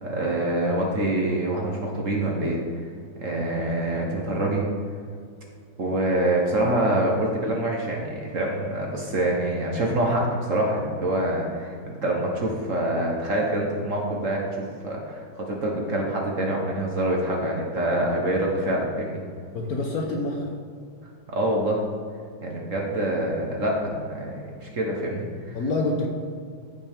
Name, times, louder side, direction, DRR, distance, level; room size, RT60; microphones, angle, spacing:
voice 1, 0.0-2.6 3.1-4.6 5.8-19.2 21.3-21.8 22.4-25.6, right 1 dB, 45° right, -1 dB, 1.4 m, -26 dB
voice 2, 19.5-20.5 25.5-26.1, left 2 dB, 55° left, 1 dB, 1.3 m, -26 dB
14.5 x 5.9 x 3.6 m, 2.2 s
omnidirectional pair, 2.2 m